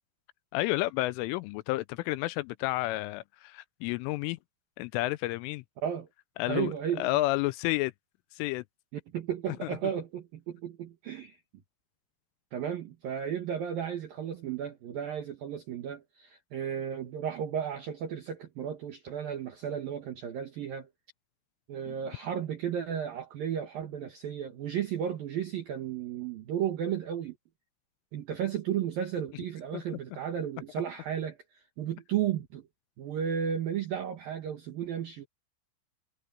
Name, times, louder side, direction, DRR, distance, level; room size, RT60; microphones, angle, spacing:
voice 1, 0.5-4.4 4.8-5.6 6.4-7.9 8.3-8.6 9.6-9.7 21.9-22.0 29.7-29.8, left 19 dB, 85° left, 2.9 m, -31 dB
voice 2, 6.5-7.1 9.1-11.4 12.5-20.9 21.7-27.4 28.1-32.7 33.0-35.3, right 9 dB, 60° right, 2.5 m, -34 dB
omnidirectional pair, 6.0 m